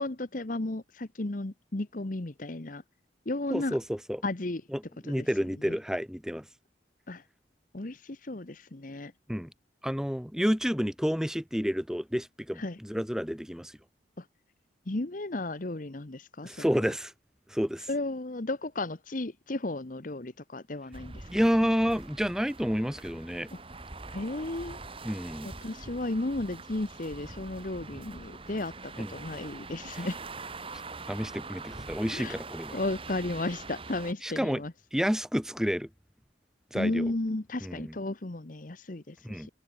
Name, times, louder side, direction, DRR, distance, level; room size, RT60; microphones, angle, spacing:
voice 1, 0.0-2.8 3.3-3.8 4.2-4.6 5.1-5.3 5.7-5.8 7.1-7.2 7.7-9.1 12.6-12.8 14.2-14.3 14.9-16.9 17.9-21.2 23.5-23.6 24.1-24.8 25.4-30.2 32.1-32.4 32.7-34.7 36.7-39.5, left 2 dB, 45° left, 1.1 m, -34 dB
voice 2, 3.5-4.2 4.7-6.5 9.3-9.5 9.8-13.7 16.4-17.1 17.5-17.9 21.3-23.5 25.0-25.5 29.0-29.1 30.0-30.1 31.1-32.8 34.2-34.6 34.9-35.9 36.7-37.1 37.6-38.0 39.2-39.5, equal, 5° right, 1.9 m, -30 dB
sound 1, 20.9-34.1, right 3 dB, 30° right, 2.2 m, -44 dB
head